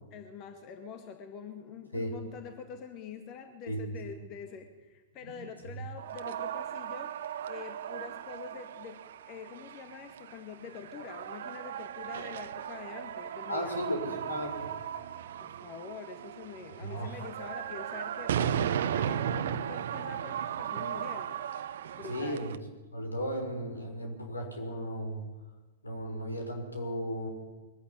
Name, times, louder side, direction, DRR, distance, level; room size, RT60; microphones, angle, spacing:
voice 1, 0.1-7.1 7.5-9.0 9.3-13.8 14.1-14.3 15.4-21.4 21.9-22.5, left 6 dB, 35° left, 7 dB, 1.9 m, -45 dB
sound 1, 6.0-22.6, right 9 dB, 60° right, 1.1 m, -36 dB
voice 2, 13.5-14.7 16.8-17.1 22.1-22.5 22.9-25.2 25.8-27.3, equal, 80° left, 3 dB, 5.8 m, -35 dB
22.5 x 14.5 x 10.0 m, 1.2 s
figure-of-eight pair, 105°, 0 cm